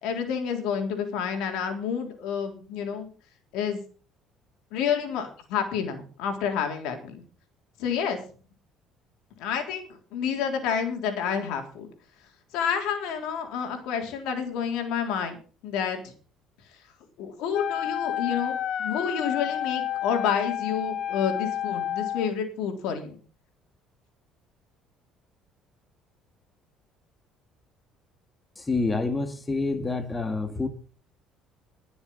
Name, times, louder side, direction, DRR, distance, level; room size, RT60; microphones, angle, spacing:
voice 1, 0.0-3.1 3.5-3.8 4.7-7.2 7.8-8.2 9.4-11.9 12.5-15.4 15.6-16.1 17.2-23.2, left 7 dB, 80° left, 3.8 m, -29 dB
Wind instrument woodwind instrument, 17.5-22.3, left 10 dB, 50° left, 0.7 m, -30 dB
voice 2, 28.6-30.7, left 3 dB, 15° left, 2.0 m, -27 dB
20.5 x 7.1 x 5.5 m
cardioid pair, 120°, 0 cm